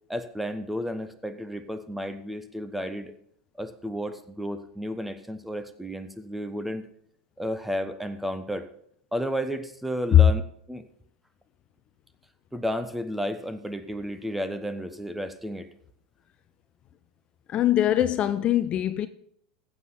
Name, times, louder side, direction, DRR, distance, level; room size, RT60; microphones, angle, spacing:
voice 1, 0.1-3.2 3.6-6.9 7.4-8.7 9.1-10.4 10.7-10.8 12.5-15.7, equal, 5° right, 1.2 m, -32 dB
voice 2, 17.5-19.1, left 12 dB, 35° left, 0.7 m, -21 dB
15.0 x 7.9 x 4.1 m
hypercardioid pair, 90°, 3 cm